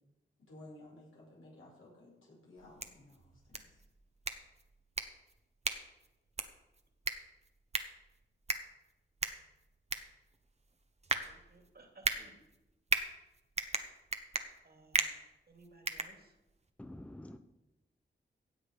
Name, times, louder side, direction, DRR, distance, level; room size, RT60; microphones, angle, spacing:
voice 1, 0.5-3.7, left 1 dB, 80° left, -4 dB, 5.8 m, -55 dB
sound 1, 2.6-16.7, right 3 dB, 30° right, 1.1 m, -39 dB
voice 2, 11.3-12.4 14.6-15.1 15.5-16.4, right 2 dB, 50° right, 4 dB, 2.5 m, -59 dB
voice 3, 16.8-17.4, left 1 dB, 5° left, 8 dB, 0.7 m, -47 dB
16.0 x 7.8 x 5.2 m, 0.97 s
cardioid pair, 70°, 21 cm